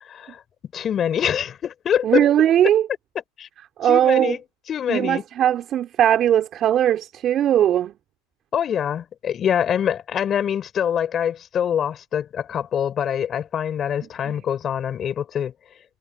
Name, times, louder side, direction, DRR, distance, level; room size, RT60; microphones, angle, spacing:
voice 1, 0.1-0.4 0.7-2.2 3.4-3.5 3.9-4.4 4.7-5.2 8.5-15.5, left 9 dB, 35° left, 4.9 m, -24 dB
voice 2, 2.0-2.9 3.8-4.4 4.9-7.9 14.2-14.4, right 11 dB, 40° right, 4.2 m, -19 dB
hypercardioid pair, 100°, 0 cm